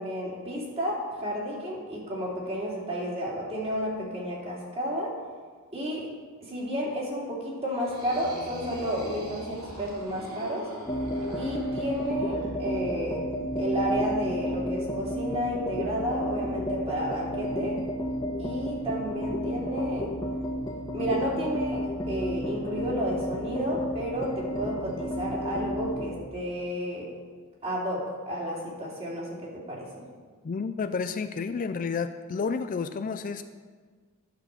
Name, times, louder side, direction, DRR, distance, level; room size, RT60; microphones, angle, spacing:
voice 1, 0.0-5.1 5.7-6.1 6.4-10.7 11.3-13.2 13.6-17.8 18.4-20.0 20.9-27.1 27.6-30.1, equal, 30° right, -4 dB, 2.8 m, -32 dB
sound 1, 7.7-12.5, right 1 dB, 75° right, 3.0 m, -42 dB
sound 2, 10.8-26.2, equal, 20° left, 1.3 m, -32 dB
voice 2, 30.4-33.4, left 5 dB, 40° left, 10 dB, 0.4 m, -30 dB
11.5 x 6.1 x 6.7 m, 1.5 s
head